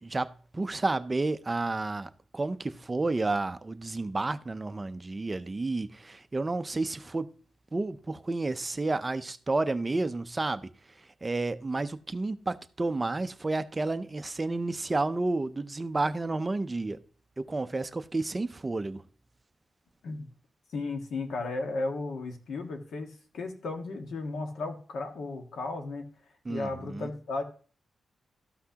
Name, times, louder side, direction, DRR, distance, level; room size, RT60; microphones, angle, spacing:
voice 1, 0.0-7.3 7.7-10.7 11.2-17.0 17.4-19.0 26.5-27.1, right 2 dB, 25° right, 0.5 m, -31 dB
voice 2, 20.7-26.0 26.5-27.4, left 3 dB, 85° left, 1.4 m, -35 dB
13.5 x 5.9 x 2.8 m
wide cardioid pair, 120°, 0 cm